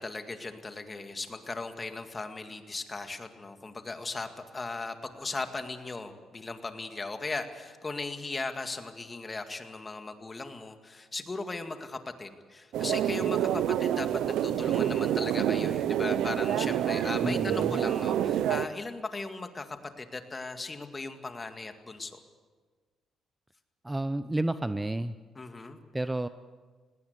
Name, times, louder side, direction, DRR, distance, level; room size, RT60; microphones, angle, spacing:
voice 1, 0.0-22.2 25.4-25.8, left 3 dB, 25° left, 7 dB, 2.1 m, -38 dB
sound 1, 12.7-18.7, right 10 dB, 80° right, 0.7 m, -27 dB
voice 2, 17.2-17.8 23.8-25.2 25.9-26.3, right 1 dB, 10° right, 12 dB, 0.6 m, -31 dB
19.0 x 18.5 x 8.2 m, 1.5 s
cardioid pair, 90°, 0 cm